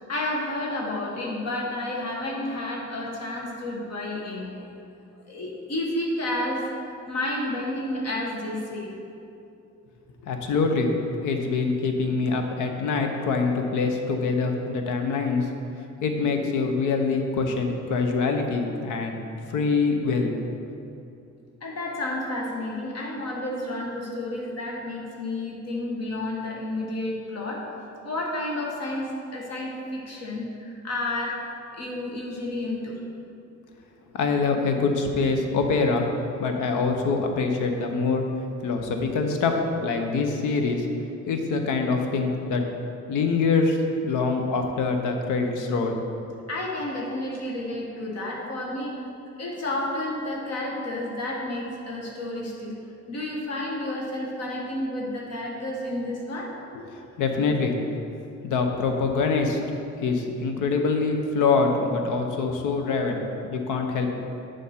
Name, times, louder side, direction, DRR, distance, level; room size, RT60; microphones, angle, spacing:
voice 1, 0.0-4.5 5.3-6.6 7.1-8.9 21.6-27.6 28.0-33.0 46.5-48.9 49.4-52.7 53.1-56.5, left 1 dB, 55° left, -2 dB, 1.3 m, -31 dB
voice 2, 10.2-10.9 11.2-15.5 16.0-19.2 19.5-20.4 34.1-36.1 36.4-38.2 38.6-39.5 39.8-40.9 41.3-42.6 43.1-43.8 44.0-45.9 56.7-56.8 57.2-57.8 58.4-59.6 60.0-63.2 63.5-64.1, left 4 dB, 85° left, 4 dB, 0.8 m, -24 dB
7.3 x 5.2 x 4.3 m, 2.7 s
cardioid pair, 90°, 30 cm